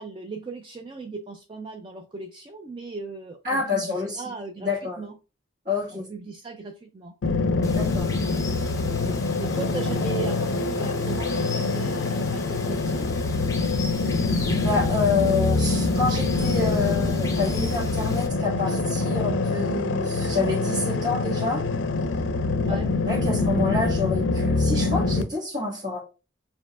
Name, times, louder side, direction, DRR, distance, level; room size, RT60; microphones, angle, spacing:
voice 1, 0.0-5.2 5.9-7.2 9.4-13.1 22.6-22.9, right 4 dB, 25° right, 4 dB, 0.3 m, -37 dB
voice 2, 3.4-4.2 4.6-5.0 5.6-6.1 7.7-8.1 9.0-9.1 14.5-21.6 23.1-26.0, left 3 dB, 45° right, -7 dB, 1.6 m, -28 dB
sound 1, 7.2-25.2, left 3 dB, 80° left, 0.4 m, -25 dB
Water, 7.6-18.3, left 3 dB, 15° left, 0.6 m, -39 dB
6.8 x 2.7 x 2.3 m, 0.32 s
head